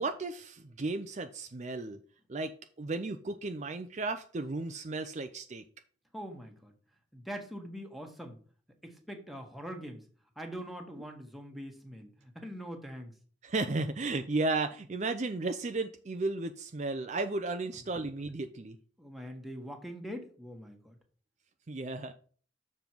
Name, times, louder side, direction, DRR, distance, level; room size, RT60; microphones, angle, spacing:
voice 1, 0.0-2.0 2.3-5.6 13.4-18.8 21.7-22.1, right 3 dB, 40° right, 7 dB, 0.5 m, -34 dB
voice 2, 6.1-6.7 7.1-8.4 8.8-10.0 10.3-13.1 19.0-21.0, equal, ahead, 3 dB, 1.4 m, -43 dB
7.1 x 5.4 x 4.5 m, 0.42 s
head